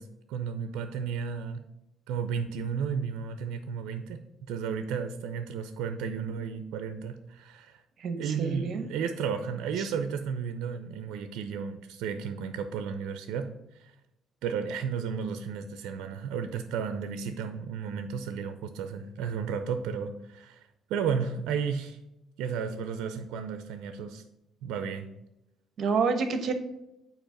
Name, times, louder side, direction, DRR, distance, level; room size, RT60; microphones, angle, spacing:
voice 1, 0.0-1.6 2.1-7.8 8.2-13.9 14.4-22.0 22.4-24.2 24.6-25.1, right 6 dB, 90° right, 9 dB, 0.5 m, -33 dB
voice 2, 8.0-8.9 9.8-9.9 25.8-26.5, right 5 dB, 60° right, 8 dB, 1.0 m, -28 dB
8.6 x 2.9 x 5.8 m, 0.88 s
cardioid pair, 95°, 0 cm